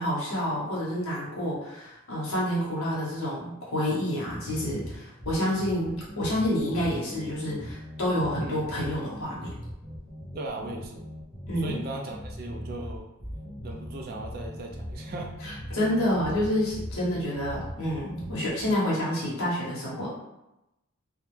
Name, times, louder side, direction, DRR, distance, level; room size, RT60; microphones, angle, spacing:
voice 1, 0.0-9.6 11.5-11.8 15.4-20.1, left 1 dB, 75° left, -6 dB, 0.8 m, -28 dB
sound 1, 4.3-18.7, equal, 20° left, 0.5 m, -40 dB
voice 2, 10.3-11.1 11.6-13.1 13.6-15.3, right 2 dB, 45° right, 0 dB, 0.3 m, -37 dB
2.2 x 2.0 x 3.1 m, 0.92 s
head